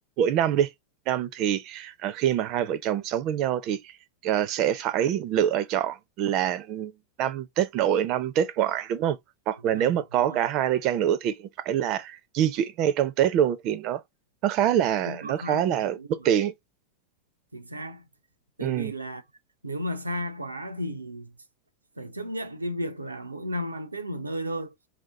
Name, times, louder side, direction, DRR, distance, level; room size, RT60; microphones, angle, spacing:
voice 1, 0.2-0.7 1.1-3.9 4.2-6.9 7.2-9.2 9.5-14.0 14.4-16.5 18.6-18.9, right 10 dB, 40° right, 0.6 m, -25 dB
voice 2, 9.6-10.4 15.0-16.3 17.5-18.0 18.6-19.2 19.6-21.4 22.0-24.7, equal, 80° right, 0.6 m, -34 dB
4.7 x 2.9 x 3.7 m
figure-of-eight pair, 90°, 0 cm